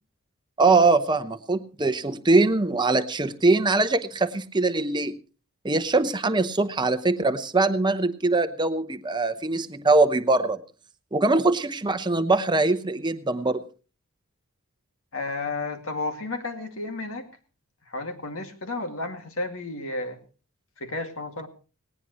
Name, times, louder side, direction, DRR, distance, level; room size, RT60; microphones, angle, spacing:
voice 1, 0.6-5.1 5.6-10.6 11.1-13.6, right 3 dB, 20° right, 10 dB, 0.8 m, -22 dB
voice 2, 15.1-17.3 17.9-20.2 20.8-21.5, left 2 dB, 65° left, 6 dB, 2.3 m, -32 dB
19.0 x 18.5 x 3.1 m, 0.36 s
head